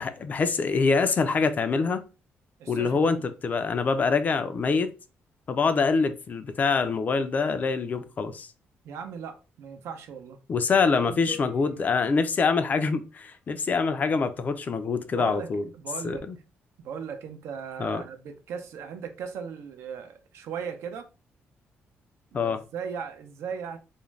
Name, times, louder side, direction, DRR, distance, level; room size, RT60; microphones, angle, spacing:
voice 1, 0.0-2.0 2.7-4.9 5.5-8.5 10.5-15.6 16.0-16.4 17.8-18.0 22.3-22.6, left 4 dB, 40° left, 0.4 m, -25 dB
voice 2, 2.6-3.2 8.8-10.4 10.8-11.3 15.1-15.5 15.7-16.2 16.8-21.1 22.3-23.8, right 7 dB, 80° right, 0.5 m, -37 dB
sound 1, 11.3-13.3, left 5 dB, 20° right, 0.6 m, -48 dB
2.4 x 2.1 x 3.1 m
cardioid pair, 115°, 4 cm